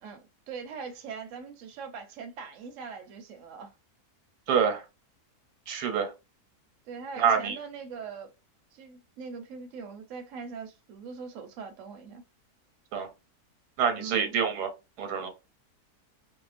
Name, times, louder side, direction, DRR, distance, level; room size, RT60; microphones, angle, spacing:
voice 1, 0.0-3.7 6.9-8.3 8.7-12.2 14.0-14.3, right 5 dB, 65° right, 0.8 m, -41 dB
voice 2, 4.5-4.8 5.7-6.1 7.2-7.6 12.9-13.1 13.8-14.7 15.0-15.3, right 7 dB, 85° right, 1.2 m, -26 dB
2.8 x 2.0 x 2.4 m
omnidirectional pair, 1.6 m